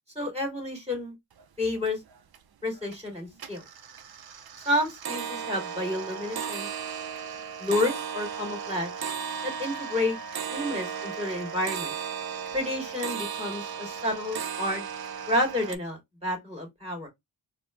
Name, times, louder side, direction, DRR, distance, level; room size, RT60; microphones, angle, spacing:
voice 1, 0.1-1.1 1.6-2.0 2.6-3.6 4.7-6.7 7.6-8.9 9.4-10.2 10.5-11.9 12.5-14.8 15.3-17.1, left 1 dB, 15° right, 2.4 m, -30 dB
sound 1, 1.4-1.5 1.8-2.4 2.8-3.1 3.4-15.8, right 7 dB, 55° right, 0.6 m, -36 dB
4.1 x 2.0 x 3.1 m
cardioid pair, 65°, 45 cm